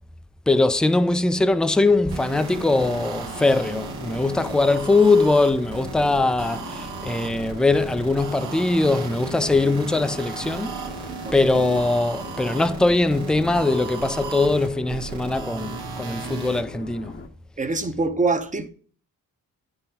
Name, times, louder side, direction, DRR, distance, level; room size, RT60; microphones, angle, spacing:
voice 1, 0.5-11.1 11.3-17.2, left 2 dB, ahead, 0.3 m, -21 dB
sound 1, 2.1-16.6, right 5 dB, 70° right, 1.2 m, -35 dB
sound 2, 2.6-17.3, left 4 dB, 30° left, 0.8 m, -40 dB
voice 2, 17.6-18.7, right 3 dB, 20° right, 0.8 m, -24 dB
9.6 x 3.8 x 2.8 m
supercardioid pair, 50°, 39 cm